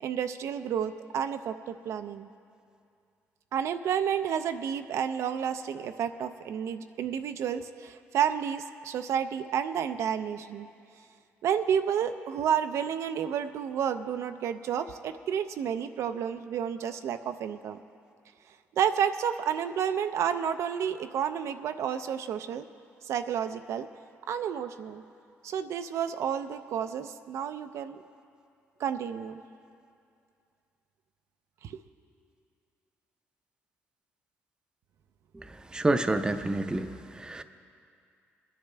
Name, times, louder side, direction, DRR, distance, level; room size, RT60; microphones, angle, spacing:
voice 1, 0.0-2.3 3.5-10.7 11.4-17.8 18.7-22.6 23.1-23.9 24.3-25.0 25.4-28.0 28.8-29.4 31.6-31.8, right 8 dB, 70° right, 8 dB, 0.4 m, -30 dB
voice 2, 35.7-37.4, right 2 dB, 15° right, 8 dB, 0.6 m, -28 dB
20.5 x 10.0 x 3.3 m, 2.5 s
cardioid pair, 95°, 5 cm